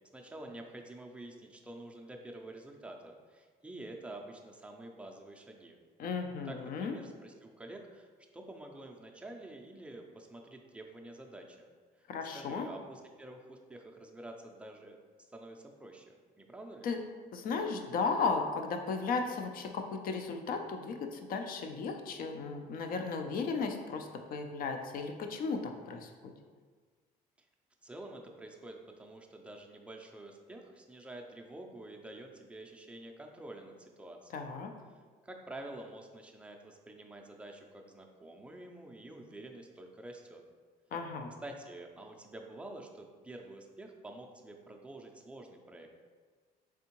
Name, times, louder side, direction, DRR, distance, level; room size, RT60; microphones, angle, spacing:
voice 1, 0.1-5.8 6.5-8.1 8.3-11.7 12.0-12.1 12.3-16.9 27.8-34.4 34.9-40.4 41.4-45.9, right 1 dB, 5° right, 2 dB, 0.4 m, -48 dB
voice 2, 6.0-7.0 12.1-12.7 16.8-17.0 17.3-26.3 34.3-34.7 40.9-41.3, left 4 dB, 60° left, 5 dB, 0.5 m, -35 dB
3.6 x 3.4 x 2.9 m, 1.5 s
cardioid pair, 110°, 17 cm